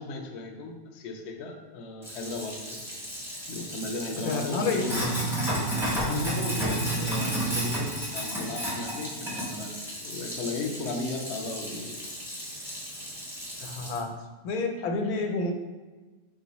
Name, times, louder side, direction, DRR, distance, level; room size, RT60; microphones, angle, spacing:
voice 1, 0.0-2.8 3.5-5.1 5.8-9.7 10.0-12.0 13.8-14.0, left 2 dB, 60° left, 2 dB, 0.7 m, -36 dB
Sink (filling or washing), 2.0-14.0, right 1 dB, 5° right, 0.4 m, -32 dB
voice 2, 4.2-4.9 6.0-6.2 13.6-14.1 14.4-15.5, left 3 dB, 90° left, 4 dB, 1.1 m, -29 dB
3.8 x 2.4 x 4.0 m, 1.3 s
omnidirectional pair, 1.5 m